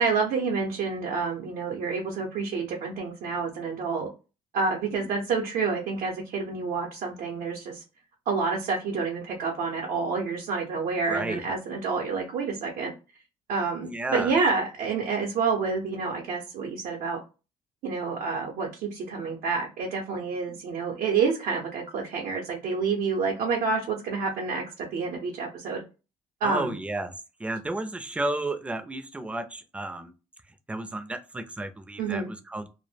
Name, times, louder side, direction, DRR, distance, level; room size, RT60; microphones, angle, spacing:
voice 1, 0.0-4.1 4.5-7.8 8.3-12.9 13.5-17.2 17.8-25.8 26.4-26.8 32.0-32.3, right 4 dB, 80° right, -1 dB, 0.6 m, -28 dB
voice 2, 11.1-11.4 13.9-14.3 26.4-27.1 27.4-30.1 30.7-32.7, right 2 dB, 10° right, 8 dB, 0.4 m, -32 dB
2.1 x 2.1 x 3.2 m, 0.31 s
cardioid pair, 100°, 13 cm